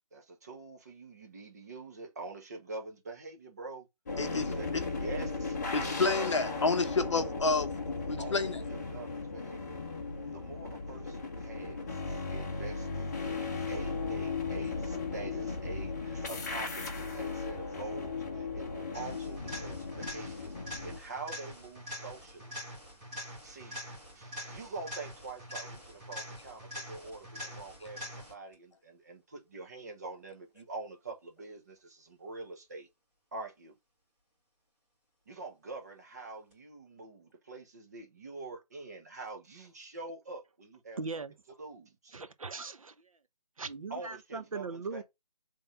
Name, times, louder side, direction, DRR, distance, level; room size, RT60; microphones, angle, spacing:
voice 1, 0.1-3.9 4.5-6.3 8.2-9.8 10.3-20.6 20.8-22.5 23.4-23.8 24.1-32.9 33.3-33.7 35.3-41.0 41.6-42.1 43.9-45.0, right 3 dB, 25° right, 1.0 m, -45 dB
sound 1, 4.1-21.0, left 4 dB, 25° left, 1.2 m, -36 dB
voice 2, 4.2-4.5 5.7-8.6, left 3 dB, 45° left, 1.1 m, -30 dB
sound 2, 18.9-28.5 36.5-36.6, equal, 10° right, 2.5 m, -44 dB
voice 3, 41.0-41.3 42.1-43.1 43.6-45.0, right 4 dB, 60° right, 0.9 m, -39 dB
5.7 x 3.5 x 5.5 m
hypercardioid pair, 170°, 20 cm